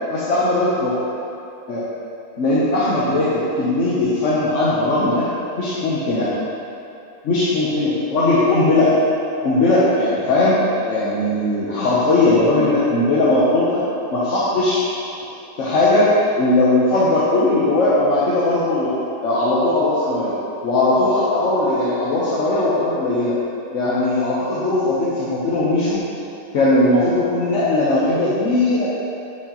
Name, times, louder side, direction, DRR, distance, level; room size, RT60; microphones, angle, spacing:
voice 1, 0.1-0.9 1.7-1.8 2.4-5.2 5.5-6.3 7.2-8.9 9.4-10.6 10.8-13.8 14.1-14.8 15.6-16.1 16.4-18.9 19.2-20.3 20.6-23.4 23.7-26.0 26.5-28.9, left 2 dB, 65° left, -9 dB, 1.2 m, -18 dB
8.5 x 4.5 x 2.9 m, 2.7 s
omnidirectional pair, 1.4 m